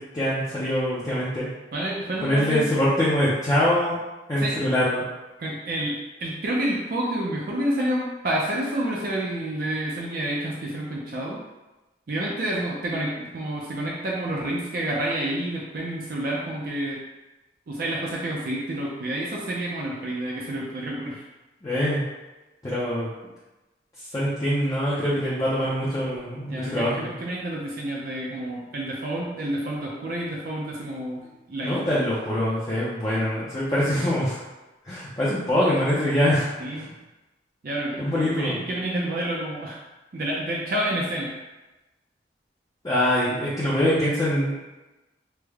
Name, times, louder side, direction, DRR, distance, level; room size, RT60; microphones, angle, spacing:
voice 1, 0.0-1.5 2.2-4.0 4.3-5.0 21.6-22.0 22.6-23.1 24.1-27.1 31.6-34.4 34.8-36.9 38.0-38.6 42.8-44.6, left 1 dB, 20° left, -9 dB, 0.4 m, -24 dB
voice 2, 1.7-2.7 4.4-4.5 5.4-5.9 6.2-11.4 12.1-17.0 17.7-21.2 26.5-31.2 31.5-31.7 36.6-36.9 37.6-39.8 40.1-41.3, right 1 dB, 50° right, -3 dB, 0.4 m, -29 dB
3.2 x 2.1 x 3.4 m, 1.1 s
head